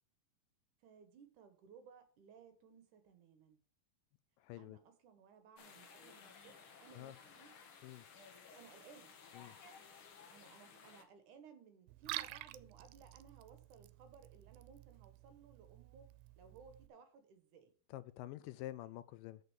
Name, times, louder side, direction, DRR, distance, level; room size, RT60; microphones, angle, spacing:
voice 1, 0.8-3.6 4.6-7.5 8.6-9.1 10.3-16.1 16.4-17.7, right 6 dB, 65° right, 8 dB, 2.5 m, -60 dB
voice 2, 4.4-4.8 6.9-7.2 7.8-8.1 9.3-9.6 17.9-19.4, left 15 dB, 80° left, 15 dB, 2.1 m, -48 dB
sound 1, 5.6-11.0, left 5 dB, 55° left, 1.5 m, -58 dB
Liquid, 11.9-16.9, right 17 dB, 90° right, 2.3 m, -50 dB
6.7 x 6.3 x 7.1 m, 0.43 s
omnidirectional pair, 4.0 m